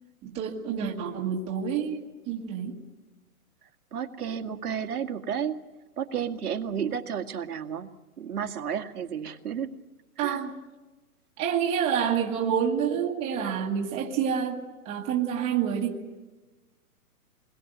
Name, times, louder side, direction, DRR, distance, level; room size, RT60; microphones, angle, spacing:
voice 1, 0.2-2.8 10.2-10.5 11.4-16.0, right 8 dB, 15° right, -1 dB, 1.7 m, -28 dB
voice 2, 3.9-5.7 6.0-9.7 10.2-10.4, right 8 dB, 80° right, 4 dB, 2.1 m, -32 dB
27.0 x 21.5 x 8.1 m, 1.2 s
hypercardioid pair, 175°, 45 cm